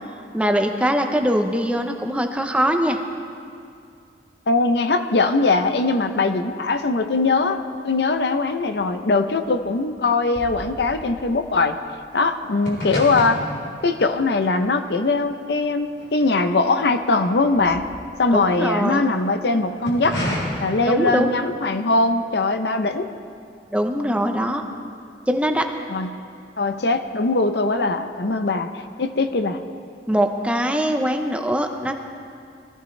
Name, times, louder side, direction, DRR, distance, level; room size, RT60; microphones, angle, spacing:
voice 1, 0.3-3.0 18.3-19.0 20.9-21.3 23.7-24.6 25.3-25.7 30.1-32.0, equal, 5° right, 5 dB, 0.7 m, -22 dB
voice 2, 4.5-11.8 12.1-13.4 13.8-17.9 18.2-20.2 20.6-23.1 25.9-26.1 26.6-29.6, left 3 dB, 65° left, 8 dB, 0.7 m, -21 dB
sound 1, 7.7-8.3 8.6-16.9 17.2-19.0 19.6-20.4, equal, 80° left, 4.0 m, -34 dB
21.5 x 14.0 x 3.3 m, 2.4 s
head